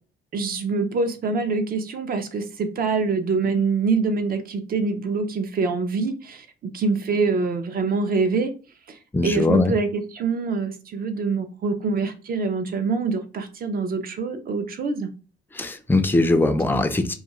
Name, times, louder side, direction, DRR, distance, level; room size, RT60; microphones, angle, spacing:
voice 1, 0.3-8.5 8.9-15.1, right 4 dB, 50° right, 8 dB, 0.5 m, -25 dB
voice 2, 9.1-9.7 15.6-17.1, left 2 dB, 10° left, 8 dB, 0.4 m, -20 dB
2.3 x 2.3 x 2.9 m, 0.35 s
cardioid pair, 90°, 20 cm